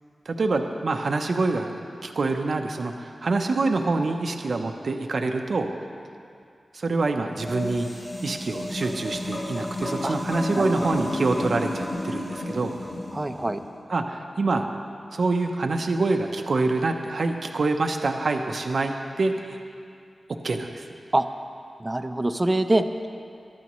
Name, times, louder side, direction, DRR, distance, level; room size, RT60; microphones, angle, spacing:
voice 1, 0.3-5.7 6.7-7.9 8.2-12.7 13.9-14.7 15.1-19.6 20.4-20.9, right 3 dB, 70° right, 4 dB, 0.8 m, -26 dB
sound 1, 7.3-13.6, left 1 dB, 45° left, 3.1 m, -32 dB
voice 2, 13.1-13.6 21.1-21.3 21.8-23.1, right 1 dB, 25° right, 7 dB, 0.6 m, -24 dB
22.0 x 11.5 x 3.1 m, 2.4 s
wide cardioid pair, 75°, 0 cm